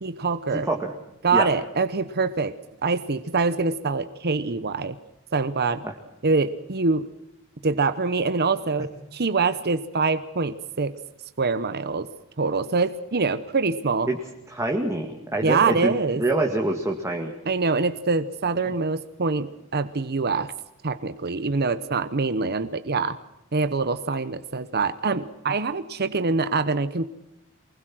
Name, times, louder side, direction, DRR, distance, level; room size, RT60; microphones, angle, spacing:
voice 1, 0.0-0.7 1.2-2.6 2.8-5.0 5.3-5.8 6.2-7.1 7.6-10.9 11.4-12.1 12.4-14.1 15.4-16.2 17.5-20.5 20.8-23.2 23.5-27.1, right 4 dB, 50° right, 12 dB, 1.0 m, -24 dB
voice 2, 0.5-0.9 1.3-1.5 5.8-5.9 14.1-14.2 14.5-17.3, right 2 dB, 15° right, 1 dB, 2.2 m, -25 dB
24.0 x 21.0 x 6.2 m, 0.87 s
head